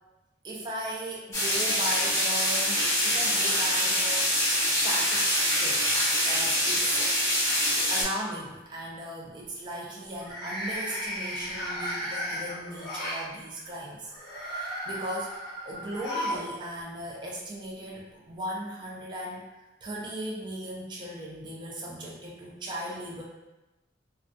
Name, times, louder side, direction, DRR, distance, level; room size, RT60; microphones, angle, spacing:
voice 1, 0.4-4.5 4.8-5.3 5.6-7.1 7.9-14.1 14.4-23.2, right 1 dB, 25° right, -3 dB, 0.3 m, -37 dB
sound 1, 1.3-8.0, equal, 15° left, 0.7 m, -25 dB
sound 2, 6.6-7.3 7.6-8.0 10.1-13.2 14.1-16.5 16.8-16.9 18.0-18.1, equal, 55° left, 0.7 m, -35 dB
2.4 x 2.1 x 2.4 m, 1.0 s
head